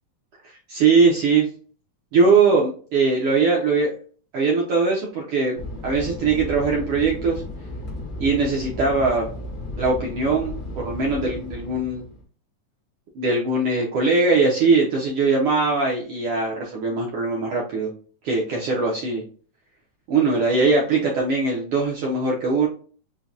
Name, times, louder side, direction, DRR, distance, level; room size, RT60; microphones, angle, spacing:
voice 1, 0.7-1.5 2.1-3.9 4.3-7.4 8.2-9.3 9.8-12.0 13.1-17.9 18.2-19.2 20.1-22.7, right 4 dB, 75° right, -2 dB, 1.3 m, -21 dB
Fixed-wing aircraft airplane, 5.6-12.2, left 2 dB, 80° left, 0.8 m, -34 dB
5.5 x 2.2 x 2.4 m, 0.41 s
omnidirectional pair, 3.5 m